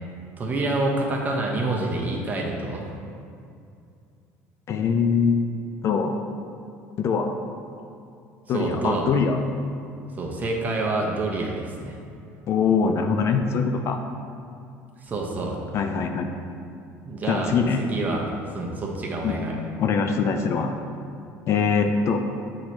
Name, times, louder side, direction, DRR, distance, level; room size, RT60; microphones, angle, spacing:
voice 1, 0.4-2.9 8.5-9.1 10.2-12.0 15.0-15.6 17.0-19.5, right 2 dB, 25° right, -1 dB, 0.9 m, -27 dB
voice 2, 4.7-5.5 5.8-6.2 7.0-7.3 8.5-9.4 12.5-14.0 15.7-16.3 17.3-17.8 19.2-19.4 19.8-20.7 21.5-22.2, left 5 dB, 45° left, 5 dB, 0.4 m, -23 dB
7.7 x 3.1 x 4.3 m, 2.4 s
cardioid pair, 120°, 6 cm